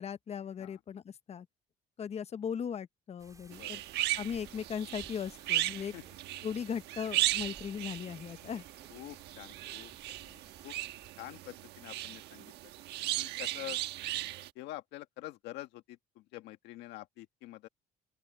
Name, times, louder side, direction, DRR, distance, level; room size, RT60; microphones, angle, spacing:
voice 1, 0.0-1.5 2.0-3.8 4.2-5.9 6.4-8.6, left 7 dB, 40° left, 0.8 m, -38 dB
sound 1, 3.2-11.1, right 3 dB, 20° right, 4.3 m, -58 dB
sound 2, 3.5-14.5, right 15 dB, 85° right, 1.2 m, -37 dB
voice 2, 8.9-9.9 10.2-10.7 11.2-12.5 13.2-13.8 14.5-17.7, left 16 dB, 90° left, 1.7 m, -47 dB
open air
cardioid pair, 110°, 17 cm